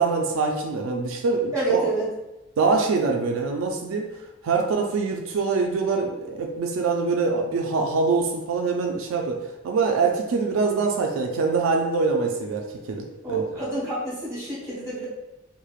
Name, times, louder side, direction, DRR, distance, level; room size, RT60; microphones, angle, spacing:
voice 1, 0.0-1.8 2.6-4.1 4.4-13.4, right 4 dB, 85° right, 2 dB, 0.3 m, -24 dB
voice 2, 1.5-2.1 13.2-15.1, right 3 dB, 15° right, -10 dB, 1.2 m, -27 dB
3.0 x 2.0 x 2.3 m, 0.98 s
head